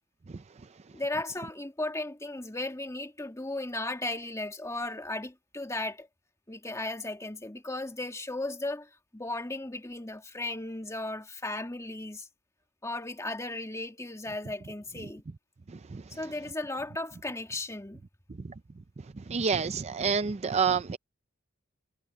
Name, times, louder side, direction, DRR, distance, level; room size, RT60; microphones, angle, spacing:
voice 1, 0.9-6.1 6.5-12.3 12.8-15.2 16.1-18.0, left 2 dB, 15° left, 2.0 m, -36 dB
voice 2, 19.3-21.0, right 6 dB, 30° right, 0.4 m, -27 dB
head